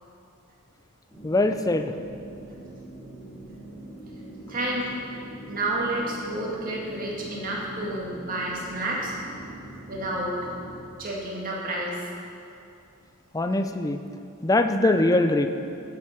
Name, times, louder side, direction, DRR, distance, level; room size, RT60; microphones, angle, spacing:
sound 1, 1.1-10.8, right 1 dB, ahead, 2.5 m, -43 dB
voice 1, 1.2-2.0 13.3-14.0 14.4-15.5, left 2 dB, 15° left, 8 dB, 0.3 m, -22 dB
voice 2, 4.5-4.9 5.5-9.1 9.9-10.6 11.0-12.0, right 1 dB, 40° right, -4 dB, 1.9 m, -30 dB
9.8 x 7.5 x 5.9 m, 2.6 s
head